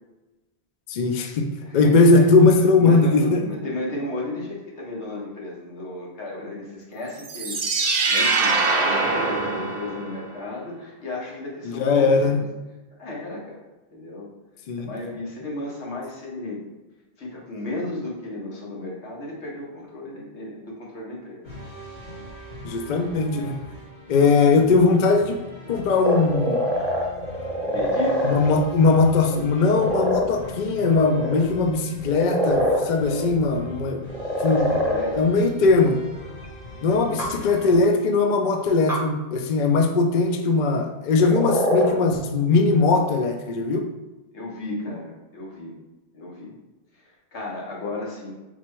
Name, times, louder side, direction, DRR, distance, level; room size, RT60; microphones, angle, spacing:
voice 1, 0.9-3.4 11.8-12.4 14.7-14.9 22.6-23.6 24.1-25.4 25.7-26.7 28.2-34.0 34.4-34.7 35.2-36.0 36.8-43.9, left 3 dB, 55° left, 4 dB, 0.5 m, -20 dB
voice 2, 1.6-2.3 2.8-12.3 13.0-13.7 13.9-14.3 14.8-16.6 17.2-21.5 27.6-28.2 34.4-35.4 37.1-37.3 44.3-45.7 46.1-46.6 46.9-48.3, left 2 dB, 90° left, -3 dB, 1.4 m, -34 dB
sound 1, 7.2-10.3, right 3 dB, 50° right, 0.5 m, -23 dB
sound 2, 21.4-37.8, left 2 dB, 70° left, 1.8 m, -41 dB
sound 3, 26.0-28.6 29.1-30.3 30.7-31.4 32.0-33.3 34.1-35.2 36.4-36.5 37.2-37.9 38.3-38.4 38.9-39.0 41.2-42.1, equal, ahead, 0.7 m, -24 dB
4.2 x 2.2 x 4.4 m, 1.1 s
omnidirectional pair, 1.1 m